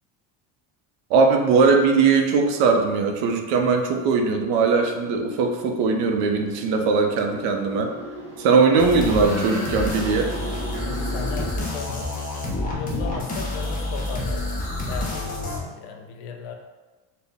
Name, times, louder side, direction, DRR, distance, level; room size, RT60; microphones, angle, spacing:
voice 1, 1.1-7.9 8.4-10.3, right 4 dB, 85° right, 4 dB, 0.7 m, -20 dB
sound 1, 4.3-11.5, right 1 dB, 5° right, 0.9 m, -38 dB
sound 2, 8.8-15.6, left 2 dB, 20° left, 0.4 m, -28 dB
voice 2, 10.8-14.5 14.9-16.5, left 6 dB, 65° left, 3 dB, 0.6 m, -36 dB
4.2 x 2.1 x 3.4 m, 1.3 s
cardioid pair, 170°, 44 cm